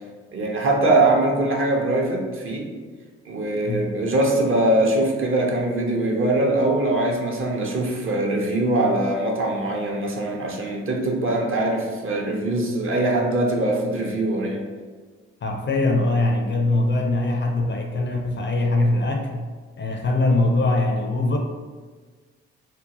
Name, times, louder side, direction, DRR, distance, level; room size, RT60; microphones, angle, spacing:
voice 1, 0.3-2.7 3.3-14.6, right 2 dB, 40° right, -1 dB, 0.7 m, -22 dB
voice 2, 15.4-19.5 19.8-21.4, left 2 dB, 35° left, 2 dB, 0.4 m, -22 dB
2.7 x 2.1 x 2.9 m, 1.5 s
hypercardioid pair, 45°, 33 cm